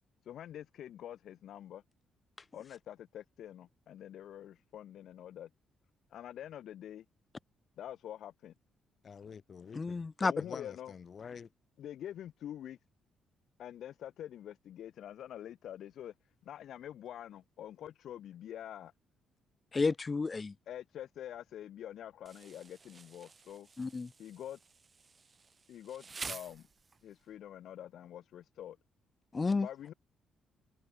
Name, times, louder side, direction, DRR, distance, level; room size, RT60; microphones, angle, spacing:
voice 1, 0.2-1.8 2.5-5.5 6.1-7.1 7.8-8.5 10.2-10.9 11.8-12.8 13.6-16.1 16.4-18.9 20.7-23.7 24.2-24.6 25.7-26.7 27.0-28.8 29.6-29.9, left 11 dB, 70° left, 4.2 m, -46 dB
voice 2, 9.0-10.1 10.4-11.5, left 6 dB, 45° left, 2.8 m, -48 dB
voice 3, 9.7-10.3 19.7-20.5 23.8-24.1 29.3-29.7, left 4 dB, 30° left, 0.7 m, -31 dB
Insect, 22.3-27.2, right 4 dB, 35° right, 4.4 m, -49 dB
cardioid pair, 90°, 0 cm